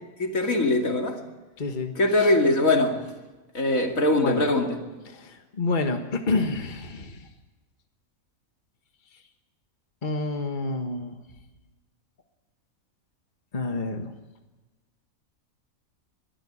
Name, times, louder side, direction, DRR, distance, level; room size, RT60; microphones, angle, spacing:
voice 1, 0.2-1.2 2.0-3.0 3.5-4.8, left 2 dB, 65° left, 2.8 m, -22 dB
voice 2, 1.6-1.9 4.2-4.4 5.6-7.1 10.0-11.2 13.5-14.1, left 3 dB, 35° left, 1.6 m, -28 dB
22.0 x 14.0 x 9.9 m
omnidirectional pair, 1.5 m